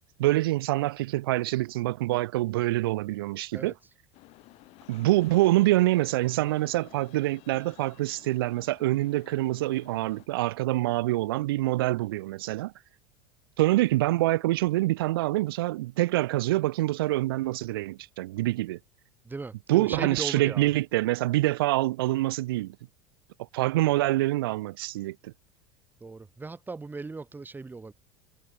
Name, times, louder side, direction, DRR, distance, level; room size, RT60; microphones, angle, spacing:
voice 1, 0.2-3.7 4.9-12.7 13.6-18.8 19.7-22.8 23.5-25.3, right 17 dB, 75° right, 0.5 m, -26 dB
voice 2, 3.5-3.9 19.2-20.7 26.0-27.9, right 3 dB, 15° right, 1.5 m, -38 dB
sound 1, 4.1-10.3, left 21 dB, 60° left, 2.8 m, -54 dB
hypercardioid pair, 80°, 12 cm